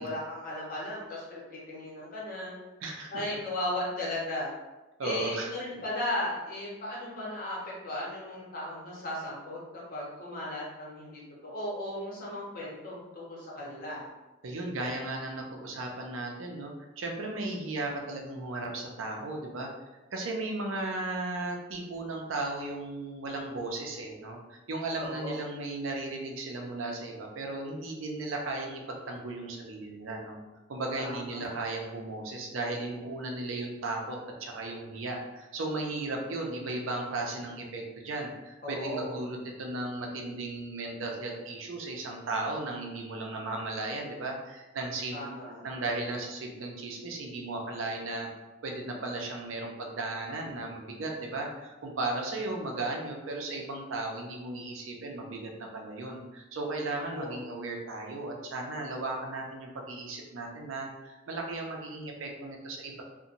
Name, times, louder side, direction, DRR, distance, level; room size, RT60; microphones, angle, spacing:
voice 1, 0.0-2.5 3.1-4.5 5.0-7.6 7.8-9.6 9.9-14.1 24.9-25.4 31.0-31.5 38.6-39.2 45.1-45.6 57.1-57.4, left 1 dB, 45° left, -5 dB, 0.9 m, -36 dB
voice 2, 2.8-3.2 5.0-5.5 14.4-19.7 20.1-30.4 30.7-45.2 45.6-48.3 48.6-63.0, right 2 dB, 85° right, 1 dB, 0.5 m, -36 dB
2.8 x 2.1 x 2.5 m, 1.1 s
head